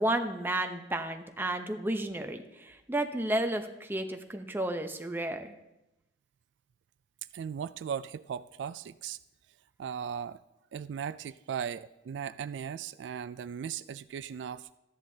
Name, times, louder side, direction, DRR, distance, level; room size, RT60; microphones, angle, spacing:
voice 1, 0.0-5.5, right 1 dB, 10° right, 5 dB, 0.8 m, -32 dB
voice 2, 7.3-9.2 9.8-10.4 10.7-14.7, right 7 dB, 80° right, 15 dB, 0.3 m, -37 dB
14.0 x 10.5 x 2.8 m, 0.93 s
head